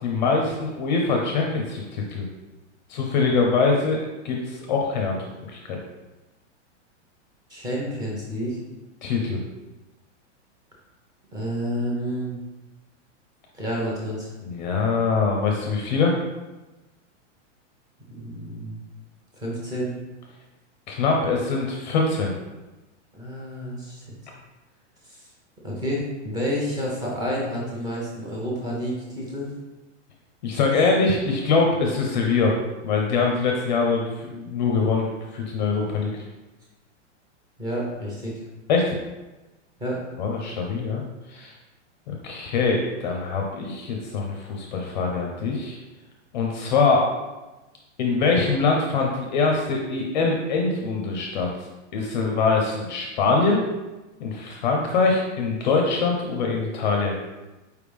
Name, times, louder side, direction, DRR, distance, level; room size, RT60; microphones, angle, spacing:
voice 1, 0.0-2.2 2.9-4.0 4.2-5.2 5.5-5.8 9.0-9.4 14.4-16.2 20.9-22.3 30.4-32.5 32.8-36.1 38.7-39.0 40.2-41.0 41.3-41.5 42.1-45.8 46.3-47.1 48.0-51.5 51.9-53.6 54.2-57.1, left 4 dB, 40° left, 1 dB, 0.5 m, -23 dB
voice 2, 7.5-8.6 11.3-12.4 13.5-14.3 18.1-18.8 19.3-19.9 23.1-24.2 25.0-25.3 25.6-29.5 37.6-38.3 39.8-40.0, equal, 10° right, -4 dB, 0.8 m, -29 dB
4.7 x 3.3 x 3.4 m, 1.1 s
supercardioid pair, 165°, 37 cm